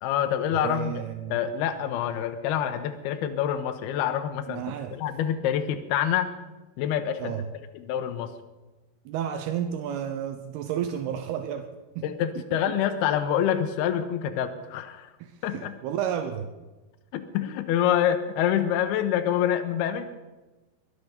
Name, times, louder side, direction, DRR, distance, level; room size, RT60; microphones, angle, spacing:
voice 1, 0.0-0.9 1.3-4.6 4.9-6.3 6.8-7.3 7.7-8.3 12.0-15.1 15.4-15.7 17.1-20.1, left 10 dB, 80° left, 7 dB, 2.8 m, -26 dB
voice 2, 0.5-1.4 4.5-5.0 7.2-7.5 9.1-11.7 12.0-12.1 12.4-12.8 15.2-16.5, right 9 dB, 80° right, 8 dB, 2.8 m, -32 dB
22.5 x 8.6 x 6.8 m, 1.1 s
omnidirectional pair, 4.7 m